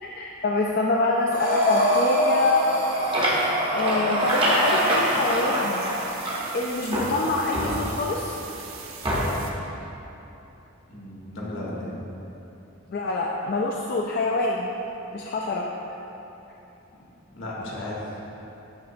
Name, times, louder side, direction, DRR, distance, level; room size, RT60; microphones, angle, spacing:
voice 1, 0.0-2.6 3.7-5.9 6.5-8.4 12.9-14.7 15.1-15.7, left 2 dB, 45° left, -2 dB, 0.3 m, -25 dB
Breathing, 1.3-6.3, right 1 dB, 45° right, 1.1 m, -26 dB
sound 1, 2.6-6.6 6.9-8.2 9.0-9.6, right 1 dB, 25° right, 0.8 m, -26 dB
sound 2, 4.3-9.5, right 6 dB, 75° right, 0.5 m, -41 dB
voice 2, 10.9-12.0 17.3-18.3, left 1 dB, 70° left, -5 dB, 1.3 m, -34 dB
10.5 x 4.0 x 2.6 m, 3.0 s
head